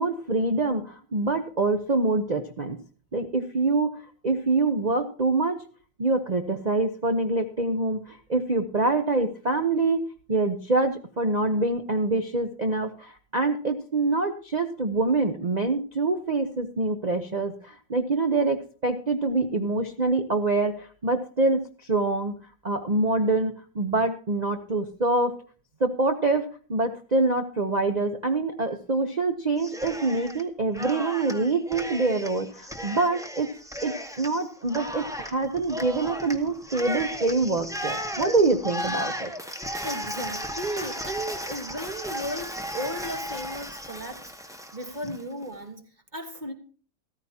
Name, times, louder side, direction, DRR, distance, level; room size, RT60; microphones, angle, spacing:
voice 1, 0.0-2.8 3.1-5.6 6.0-10.0 10.3-22.3 22.6-25.4 25.8-33.5 33.8-39.3, right 3 dB, 75° right, 6 dB, 0.3 m, -25 dB
Cheering, 29.6-30.4 30.7-45.2, equal, 5° right, 0.7 m, -35 dB
voice 2, 39.8-46.5, equal, 25° right, 6 dB, 1.3 m, -35 dB
14.5 x 14.0 x 2.8 m, 0.40 s
omnidirectional pair, 2.1 m